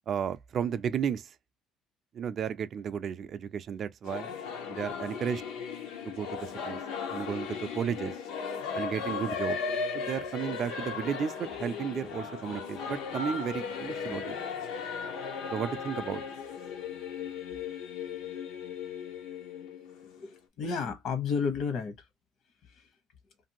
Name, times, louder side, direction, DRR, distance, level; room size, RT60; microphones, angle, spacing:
voice 1, 0.1-1.3 2.1-4.3 4.7-5.4 6.1-6.8 7.1-8.1 8.7-9.6 9.9-14.4 15.5-16.2, right 8 dB, 45° right, 0.3 m, -33 dB
Singing / Musical instrument, 4.0-20.4, left 5 dB, 90° left, 0.7 m, -36 dB
voice 2, 20.2-22.0 22.7-22.9, left 5 dB, 65° left, 1.0 m, -32 dB
2.6 x 2.5 x 2.8 m
cardioid pair, 120°, 0 cm